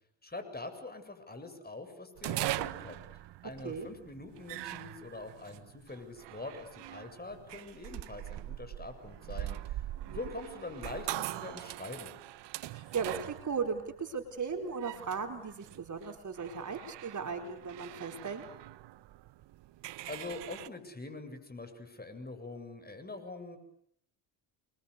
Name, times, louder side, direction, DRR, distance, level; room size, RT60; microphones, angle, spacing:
voice 1, 0.2-3.0 3.4-9.8 10.1-12.1 20.1-23.6, left 2 dB, 20° left, 8 dB, 7.9 m, -44 dB
sound 1, 2.2-20.7, right 15 dB, 70° right, 1.3 m, -42 dB
voice 2, 12.7-18.5, right 5 dB, 40° right, 5 dB, 4.6 m, -37 dB
29.5 x 24.0 x 8.4 m, 0.69 s
supercardioid pair, 80°, 43 cm